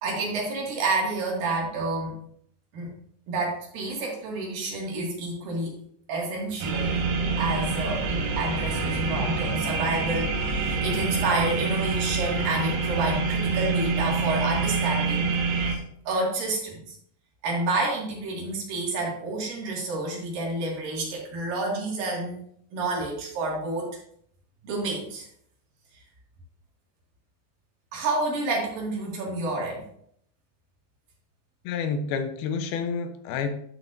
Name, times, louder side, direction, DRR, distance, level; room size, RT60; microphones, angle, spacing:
voice 1, 0.0-2.2 2.7-2.9 3.3-5.8 6.1-7.0 7.4-15.3 15.7-15.8 16.1-17.0 17.4-22.4 22.7-23.9 24.6-25.3 27.9-29.8, right 2 dB, 70° right, -2 dB, 3.7 m, -29 dB
sound 1, 6.6-15.8, right 4 dB, 85° right, 3.0 m, -26 dB
voice 2, 31.6-33.5, left 5 dB, 90° left, 8 dB, 2.7 m, -29 dB
11.0 x 6.4 x 2.6 m, 0.67 s
omnidirectional pair, 4.3 m